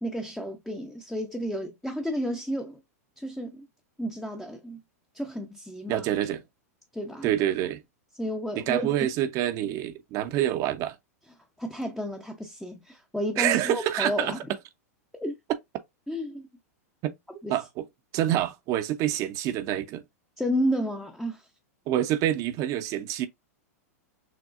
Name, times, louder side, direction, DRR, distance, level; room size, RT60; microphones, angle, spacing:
voice 1, 0.0-2.8 3.2-3.7 4.0-4.8 5.1-6.1 6.9-7.3 8.2-9.1 11.6-14.4 15.1-15.3 16.1-16.5 17.4-17.6 20.4-21.5, equal, 5° left, 0.7 m, -31 dB
voice 2, 5.9-6.4 7.2-7.8 8.5-11.0 13.4-14.3 17.0-17.1 17.5-17.8 18.1-20.0 21.9-23.3, right 12 dB, 40° right, 0.7 m, -27 dB
6.4 x 2.3 x 2.5 m
hypercardioid pair, 105°, 8 cm